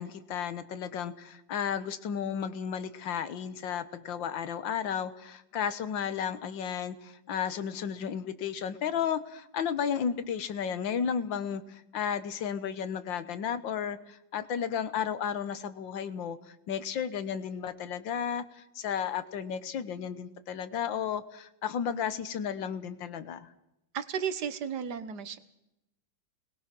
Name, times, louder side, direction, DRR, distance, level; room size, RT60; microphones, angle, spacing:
voice 1, 0.0-23.5, left 8 dB, 80° left, 13 dB, 1.9 m, -33 dB
voice 2, 23.9-25.4, right 7 dB, 65° right, 12 dB, 1.8 m, -34 dB
28.5 x 21.0 x 6.1 m, 0.90 s
omnidirectional pair, 2.0 m